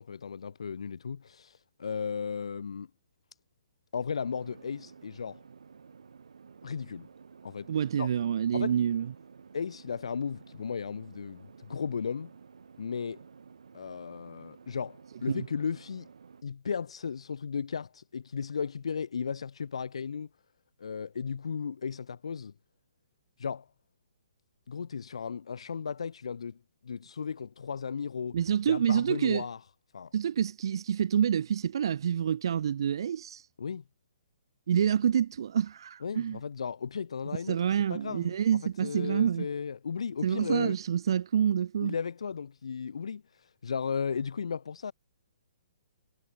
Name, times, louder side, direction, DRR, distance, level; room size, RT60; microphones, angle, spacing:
voice 1, 0.0-2.9 3.9-5.4 6.6-7.1 7.4-7.7 8.0-8.1 8.5-8.7 9.5-12.3 12.8-13.2 13.7-16.1 16.4-20.3 20.8-22.5 23.4-23.7 24.7-26.6 26.8-28.4 28.7-29.6 29.9-30.1 33.6-33.8 36.0-40.7 41.8-44.9, left 6 dB, 80° left, 2.2 m, -35 dB
sound 1, 4.2-16.4, right 5 dB, 90° right, 6.4 m, -53 dB
voice 2, 7.7-9.1 15.3-15.5 28.3-29.4 30.1-33.5 34.7-36.4 37.4-39.5 40.2-41.9, right 8 dB, 55° right, 0.3 m, -27 dB
hypercardioid pair, 170°, 3 cm